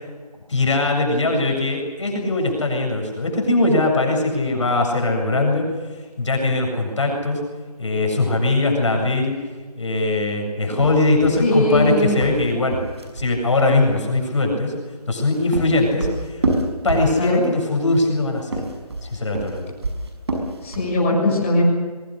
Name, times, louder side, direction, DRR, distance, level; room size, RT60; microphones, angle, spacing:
voice 1, 0.5-5.6 6.2-7.4 7.8-9.4 9.8-12.8 13.1-14.7 15.1-16.4 16.8-18.5 19.0-19.7, left 2 dB, 50° left, 1 dB, 7.8 m, -20 dB
sound 1, 10.7-13.3 15.0-17.5 18.4-21.0, right 2 dB, 40° right, 5.9 m, -27 dB
voice 2, 11.4-12.2 17.2-17.4 20.6-21.6, left 1 dB, 20° left, -5 dB, 7.2 m, -20 dB
27.0 x 23.5 x 6.6 m, 1.4 s
figure-of-eight pair, 170°, 20 cm